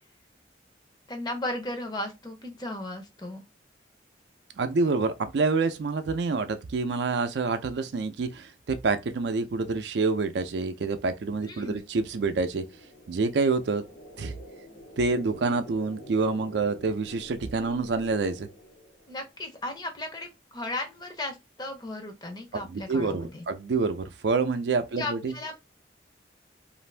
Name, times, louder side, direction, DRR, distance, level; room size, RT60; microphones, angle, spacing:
voice 1, 1.1-3.4 11.4-11.8 19.1-23.5 24.9-25.5, left 2 dB, 20° left, 0.6 m, -35 dB
voice 2, 4.6-12.6 13.1-13.8 14.2-14.3 15.0-18.5 22.5-25.3, right 4 dB, 70° right, 0.4 m, -27 dB
sound 1, 11.5-19.3, equal, 85° left, 1.2 m, -48 dB
2.5 x 2.5 x 3.2 m
head